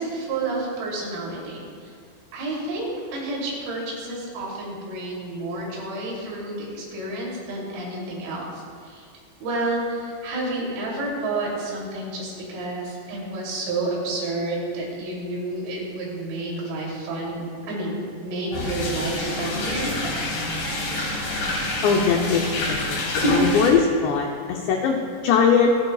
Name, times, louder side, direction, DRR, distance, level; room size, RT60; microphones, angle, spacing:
voice 1, 0.0-2.0 2.3-9.1 9.4-20.0, right 2 dB, 90° right, -4 dB, 5.7 m, -30 dB
sound 1, 18.5-23.7, left 1 dB, 70° left, 6.4 m, -26 dB
voice 2, 21.8-22.4 22.7-25.7, left 6 dB, 85° left, 1 dB, 2.4 m, -21 dB
27.5 x 9.6 x 2.4 m, 2.1 s
omnidirectional pair, 6.0 m